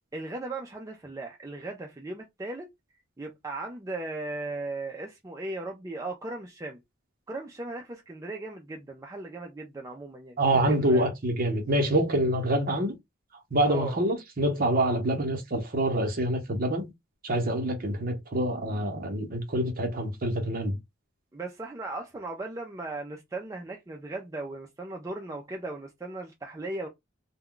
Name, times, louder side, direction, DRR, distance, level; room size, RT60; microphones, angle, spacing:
voice 1, 0.1-2.7 3.2-6.8 7.3-11.1 13.7-14.0 21.3-26.9, right 2 dB, 15° right, 0.4 m, -37 dB
voice 2, 10.4-12.9 13.5-16.9 17.2-20.8, right 1 dB, 45° right, 0.8 m, -26 dB
2.2 x 2.2 x 3.7 m
head